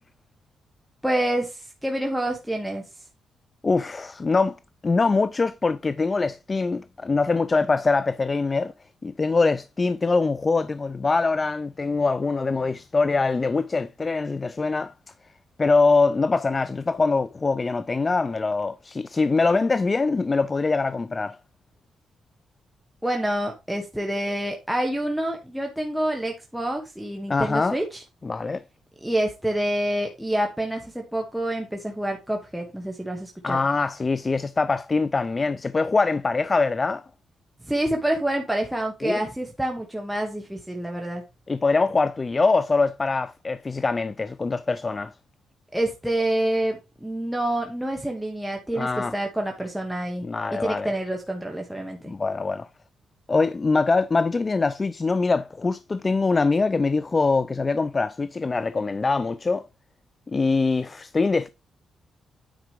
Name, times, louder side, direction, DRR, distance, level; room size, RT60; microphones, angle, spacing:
voice 1, 1.0-2.8 23.0-28.0 29.0-33.6 37.7-41.2 45.7-50.2 50.5-52.1, right 1 dB, ahead, 1.2 m, -27 dB
voice 2, 3.6-4.6 4.8-8.7 9.0-14.9 15.6-21.4 27.3-27.8 28.2-28.6 33.4-37.0 39.0-39.2 41.5-45.1 48.7-49.1 50.2-50.9 52.1-52.7 53.3-59.6 60.3-61.5, left 3 dB, 20° left, 0.3 m, -23 dB
9.3 x 4.8 x 5.0 m
wide cardioid pair, 175°, 0 cm